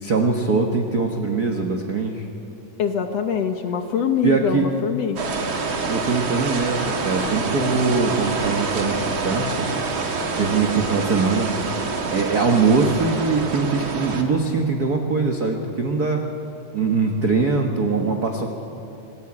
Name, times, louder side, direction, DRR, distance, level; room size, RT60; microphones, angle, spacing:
voice 1, 0.0-2.3 4.2-4.6 5.9-9.7 10.4-11.5 12.1-16.2 16.7-18.6, right 4 dB, 75° right, 3 dB, 0.8 m, -22 dB
voice 2, 2.8-5.3, left 7 dB, 65° left, 6 dB, 1.8 m, -24 dB
sound 1, 5.2-14.2, right 4 dB, 45° right, 2.1 m, -26 dB
27.0 x 18.0 x 8.7 m, 3.0 s
omnidirectional pair, 3.9 m